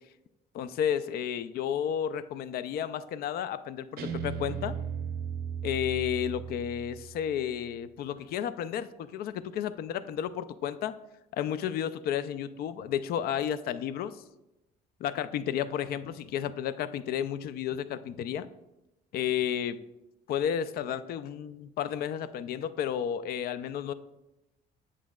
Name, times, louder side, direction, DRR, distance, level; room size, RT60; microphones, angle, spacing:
voice 1, 0.5-4.7 5.6-10.9 11.3-14.2 15.0-18.5 19.1-19.8 20.3-23.9, left 9 dB, 65° left, 13 dB, 0.4 m, -32 dB
Guitar, 4.0-7.2, right 7 dB, 65° right, 0.6 m, -36 dB
8.3 x 6.1 x 2.3 m, 0.96 s
cardioid pair, 110°, 17 cm